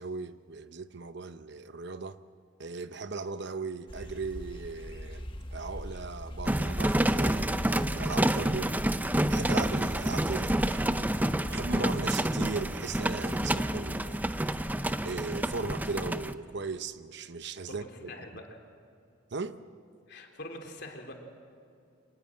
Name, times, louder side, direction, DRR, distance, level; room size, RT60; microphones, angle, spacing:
voice 1, 0.0-2.2 2.6-8.7 9.3-10.9 11.5-14.7 15.0-18.1 19.3-19.6, right 4 dB, 60° right, 0.8 m, -38 dB
sound 1, 3.9-11.1, equal, 25° left, 1.4 m, -42 dB
sound 2, 6.5-16.3, right 1 dB, 10° right, 0.6 m, -28 dB
voice 2, 17.7-18.4 20.1-21.1, left 1 dB, 55° left, 3.3 m, -44 dB
25.5 x 19.0 x 7.7 m
head